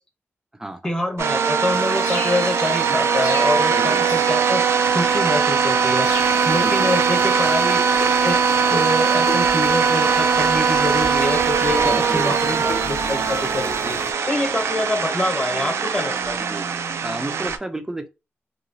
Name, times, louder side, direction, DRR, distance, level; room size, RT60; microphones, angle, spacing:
voice 1, 0.8-4.6 4.9-6.1 6.4-7.8 8.2-8.4 8.7-14.0 14.2-16.4, left 1 dB, 15° left, 0.9 m, -25 dB
sound 1, 1.2-17.6, right 6 dB, 85° right, 0.3 m, -20 dB
sound 2, 1.7-7.3, left 2 dB, 90° left, 0.9 m, -37 dB
voice 2, 3.7-4.0 6.6-6.9 11.7-12.4 16.5-16.7 17.0-18.1, right 1 dB, 10° right, 0.4 m, -30 dB
sound 3, 6.0-14.1, left 3 dB, 70° left, 0.6 m, -36 dB
2.9 x 2.3 x 2.7 m
wide cardioid pair, 150°, 5 cm